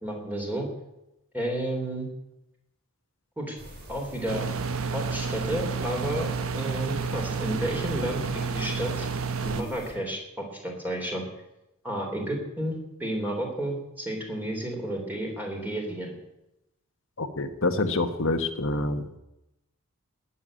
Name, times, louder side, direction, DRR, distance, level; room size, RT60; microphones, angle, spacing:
voice 1, 0.0-0.7 1.3-2.1 3.4-3.6 3.9-4.5 4.9-9.1 9.4-11.2 11.8-16.1, right 1 dB, 10° right, 0 dB, 3.3 m, -31 dB
sound 1, 3.6-9.9, right 1 dB, 45° right, 5.2 m, -46 dB
sound 2, 4.3-9.6, right 5 dB, 65° right, 1.1 m, -30 dB
voice 2, 17.2-19.2, left 2 dB, 60° left, 9 dB, 1.4 m, -27 dB
19.5 x 7.1 x 9.0 m, 0.90 s
head